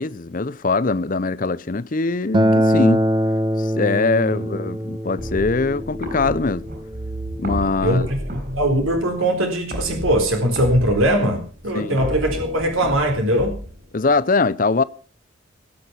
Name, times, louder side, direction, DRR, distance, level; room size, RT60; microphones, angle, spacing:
voice 1, 0.0-3.0 3.6-6.7 7.4-8.0 11.7-12.0 13.9-14.8, left 3 dB, 40° left, 0.6 m, -22 dB
Acoustic guitar, 2.3-7.5, right 1 dB, 25° right, 0.9 m, -22 dB
sound 1, 5.2-14.1, right 1 dB, 45° right, 6.8 m, -32 dB
voice 2, 7.8-8.2 8.5-13.6, right 1 dB, 85° right, 4.0 m, -20 dB
20.5 x 8.9 x 5.8 m
head